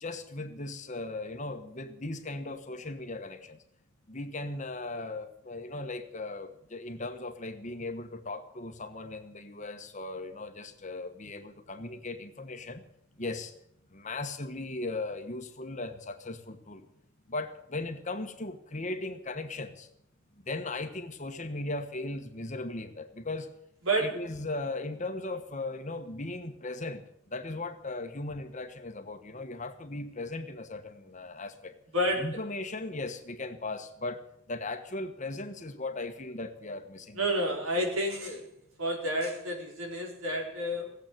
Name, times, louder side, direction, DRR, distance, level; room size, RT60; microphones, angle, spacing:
voice 1, 0.0-3.6 4.1-12.8 13.2-13.5 13.9-16.9 17.3-19.9 20.5-23.5 24.0-27.0 27.3-31.7 32.2-37.8, left 2 dB, 35° left, 7 dB, 1.2 m, -38 dB
voice 2, 23.9-24.2 31.9-32.4 37.1-38.4 38.8-41.0, equal, 75° right, 1 dB, 4.3 m, -30 dB
17.5 x 8.2 x 9.1 m, 0.72 s
head